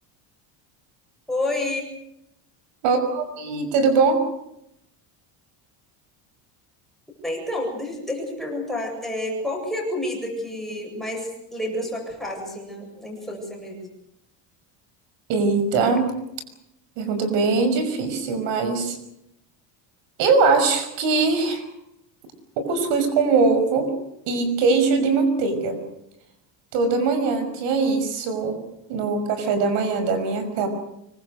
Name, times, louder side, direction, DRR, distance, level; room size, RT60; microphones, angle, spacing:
voice 1, 1.3-1.9 7.2-13.9, left 1 dB, ahead, -1 dB, 8.0 m, -29 dB
voice 2, 2.8-4.2 15.3-16.1 17.0-19.0 20.2-21.6 22.6-23.9 24.3-25.8 26.7-28.6 28.9-30.7, right 4 dB, 65° right, 9 dB, 5.9 m, -21 dB
25.5 x 24.0 x 6.5 m, 0.80 s
cardioid pair, 170°, 46 cm